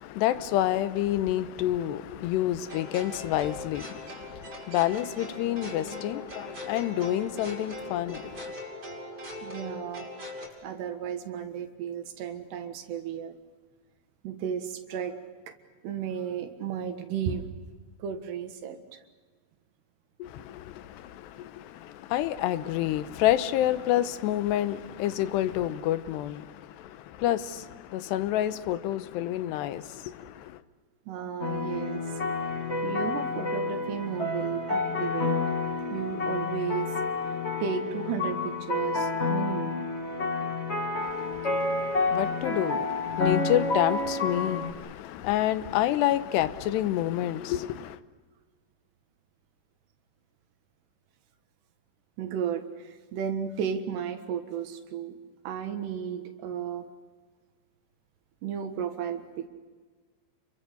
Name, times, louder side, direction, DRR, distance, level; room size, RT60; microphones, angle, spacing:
voice 1, 0.0-8.5 20.2-30.6 41.0-48.0, left 13 dB, 85° left, 3.1 m, -29 dB
sound 1, 2.7-10.5, left 1 dB, 20° right, 5.7 m, -41 dB
voice 2, 9.4-10.1 10.6-13.3 14.2-15.2 15.8-17.4 18.0-19.0 31.1-32.0 32.8-35.4 35.9-37.0 37.6-39.8 52.2-55.2 55.5-56.9 58.4-59.5, right 8 dB, 80° right, 3.7 m, -33 dB
sound 2, 31.4-44.7, left 3 dB, 25° left, 1.4 m, -29 dB
30.0 x 23.5 x 6.7 m
omnidirectional pair, 4.8 m